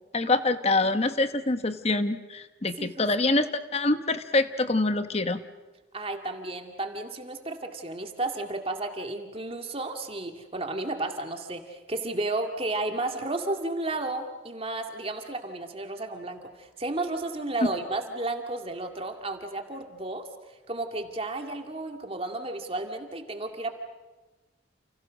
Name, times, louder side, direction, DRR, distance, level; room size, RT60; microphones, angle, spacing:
voice 1, 0.1-5.4, left 2 dB, 30° left, 10 dB, 1.1 m, -25 dB
voice 2, 5.9-20.3 20.7-23.7, right 2 dB, 30° right, 4 dB, 2.2 m, -33 dB
29.5 x 29.5 x 6.4 m, 1.2 s
head